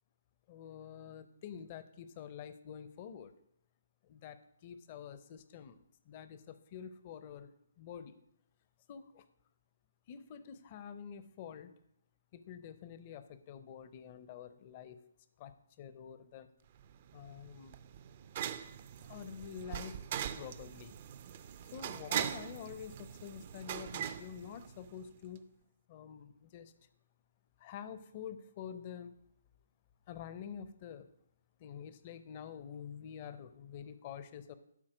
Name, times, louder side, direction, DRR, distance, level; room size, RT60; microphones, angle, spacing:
voice 1, 0.5-3.3 4.0-5.8 6.0-8.1 8.9-9.2 10.1-11.7 12.3-15.0 15.4-16.5 17.1-17.8 19.0-20.0 20.3-20.9 21.7-25.5 25.9-26.7 27.6-29.1 30.1-31.1 31.6-34.5, left 8 dB, 35° left, 13 dB, 0.6 m, -48 dB
sound 1, 16.8-25.1, right 9 dB, 40° right, 0.4 m, -41 dB
12.0 x 4.3 x 5.0 m, 0.76 s
hypercardioid pair, 150°, 0 cm